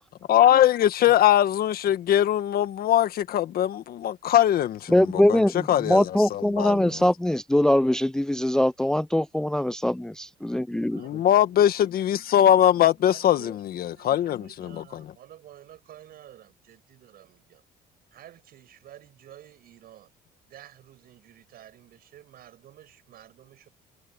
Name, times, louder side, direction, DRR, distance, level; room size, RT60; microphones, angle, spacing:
voice 1, 0.3-7.0 11.0-15.1, left 11 dB, 60° left, 1.6 m, -22 dB
voice 2, 4.9-11.0, left 1 dB, 5° left, 0.5 m, -22 dB
voice 3, 10.9-11.6 13.0-17.6 18.1-20.1 20.4-23.7, right 12 dB, 65° right, 7.0 m, -51 dB
cardioid pair, 110°, 17 cm